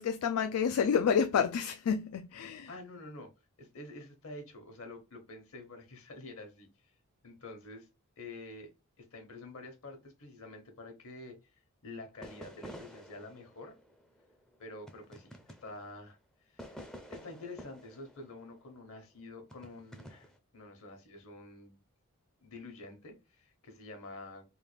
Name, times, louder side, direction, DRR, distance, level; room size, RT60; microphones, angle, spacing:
voice 1, 0.0-2.7, left 7 dB, 85° left, 0.4 m, -29 dB
voice 2, 2.7-3.3 3.6-6.7 7.2-7.9 8.2-8.7 9.0-11.4 11.8-13.7 14.6-16.2 16.4-21.8 22.4-24.4, left 2 dB, 65° left, 1.2 m, -48 dB
sound 1, 12.2-16.1 16.6-19.0 19.5-20.4, equal, 5° left, 0.4 m, -50 dB
3.5 x 2.4 x 3.2 m
head